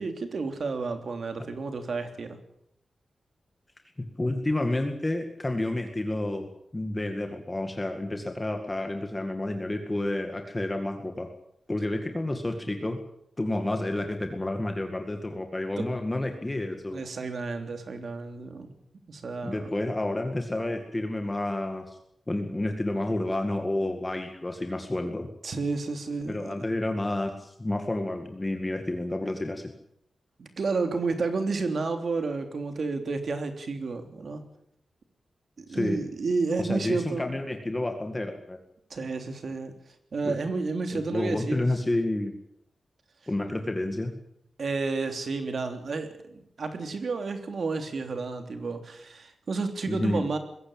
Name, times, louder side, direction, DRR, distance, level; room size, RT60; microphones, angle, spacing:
voice 1, 0.0-2.4 15.8-15.9 16.9-18.7 19.1-19.7 25.4-26.6 30.4-34.4 35.6-37.3 38.9-39.7 40.1-41.7 44.6-50.4, right 4 dB, 55° right, 6 dB, 3.3 m, -31 dB
voice 2, 4.2-11.3 11.7-13.0 13.4-17.0 19.4-22.0 22.3-25.3 26.3-29.7 35.7-36.0 36.6-38.6 40.2-40.4 40.9-42.3 43.3-44.1 49.9-50.2, left 1 dB, 15° left, 5 dB, 2.0 m, -30 dB
21.5 x 16.5 x 8.8 m, 0.75 s
wide cardioid pair, 155°, 0 cm